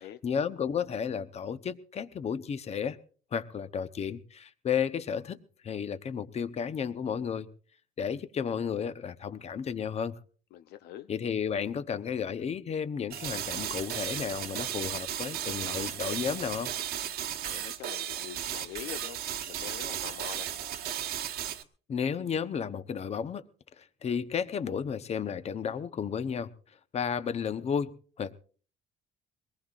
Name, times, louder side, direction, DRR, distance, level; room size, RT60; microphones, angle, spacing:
voice 1, 0.2-3.0 3.3-7.5 8.0-10.2 11.1-16.7 21.9-23.4 23.8-26.5 26.9-28.4, left 7 dB, 40° left, 0.9 m, -33 dB
voice 2, 10.5-11.1 17.4-20.5, left 11 dB, 75° left, 0.7 m, -44 dB
sound 1, 13.1-21.6, right 10 dB, 70° right, 1.3 m, -35 dB
22.5 x 19.5 x 2.5 m
cardioid pair, 110°, 17 cm